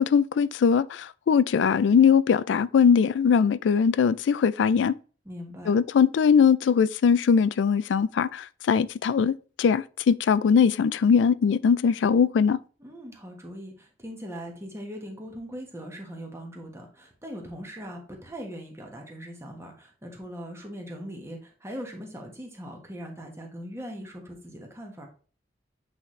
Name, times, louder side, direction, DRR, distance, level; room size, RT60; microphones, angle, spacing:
voice 1, 0.0-4.9 5.7-12.6, left 6 dB, 80° left, 0.3 m, -21 dB
voice 2, 5.2-5.7 12.8-25.1, equal, 15° right, 1.3 m, -40 dB
8.2 x 4.2 x 3.1 m
head